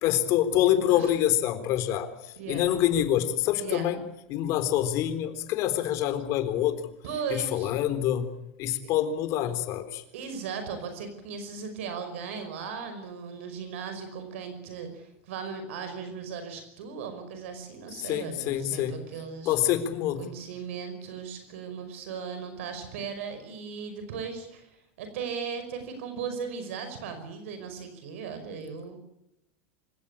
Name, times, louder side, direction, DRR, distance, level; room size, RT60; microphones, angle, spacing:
voice 1, 0.0-4.0 4.3-6.9 7.3-8.3 8.6-10.0 18.0-19.0 19.5-20.2, left 12 dB, 45° left, 10 dB, 3.8 m, -26 dB
voice 2, 2.4-2.7 3.6-3.9 7.0-7.7 10.1-19.6 20.2-29.0, right 6 dB, 75° right, 8 dB, 5.4 m, -37 dB
26.5 x 16.5 x 8.6 m, 0.86 s
supercardioid pair, 140°, 7 cm